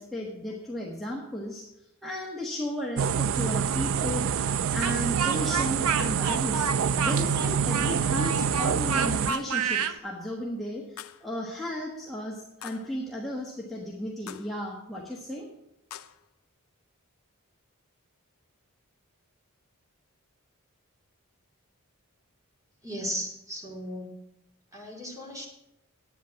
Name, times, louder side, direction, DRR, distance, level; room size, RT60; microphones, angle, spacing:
voice 1, 0.0-1.7 2.0-6.7 7.0-15.5, left 1 dB, ahead, -4 dB, 1.3 m, -34 dB
sound 1, 3.0-9.3, right 7 dB, 65° right, 0.4 m, -26 dB
Speech, 4.8-10.0, right 5 dB, 85° right, 0.8 m, -30 dB
sound 2, 9.3-9.7 11.0-11.3 12.6-13.0 14.3-14.6 15.9-16.3, left 10 dB, 75° left, 0.5 m, -44 dB
voice 2, 22.8-24.1 24.7-25.5, equal, 15° right, -1 dB, 2.9 m, -36 dB
10.5 x 9.2 x 5.7 m, 0.85 s
head